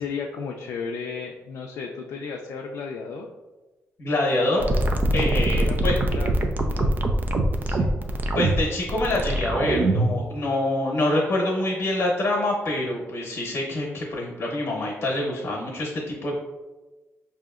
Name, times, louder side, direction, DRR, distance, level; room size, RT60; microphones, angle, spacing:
voice 1, 0.0-3.3 5.5-7.0 7.6-7.9, left 5 dB, 80° left, 1 dB, 0.3 m, -34 dB
voice 2, 4.0-4.8 5.1-5.9 8.3-16.4, left 1 dB, 60° left, -2 dB, 0.9 m, -26 dB
sound 1, 4.6-10.2, right 1 dB, 35° right, 0.4 m, -23 dB
4.9 x 2.7 x 2.4 m, 1.2 s
cardioid pair, 125°, 5 cm